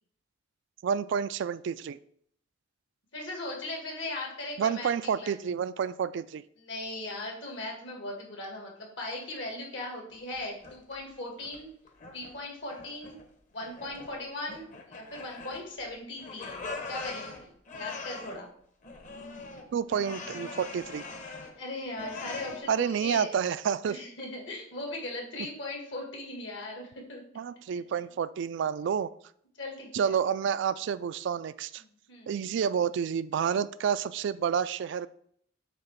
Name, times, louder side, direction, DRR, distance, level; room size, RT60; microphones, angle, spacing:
voice 1, 0.8-2.0 4.6-6.4 19.7-21.0 22.7-24.0 27.4-29.1 29.9-31.8 32.3-35.1, right 7 dB, 65° right, 15 dB, 0.3 m, -29 dB
voice 2, 3.1-4.9 5.2-5.4 6.6-11.7 12.1-13.2 13.5-16.6 16.9-18.5 21.6-23.4 23.9-27.2 29.6-30.2 31.8-32.3, left 2 dB, 65° left, 0 dB, 2.0 m, -39 dB
sound 1, 10.1-11.0 11.4-12.4 12.7-13.3 13.6-14.2 14.5-15.9 16.2-18.4 18.8-21.6 21.9-22.6, left 3 dB, 40° left, 1.0 m, -42 dB
7.6 x 3.0 x 5.7 m, 0.66 s
head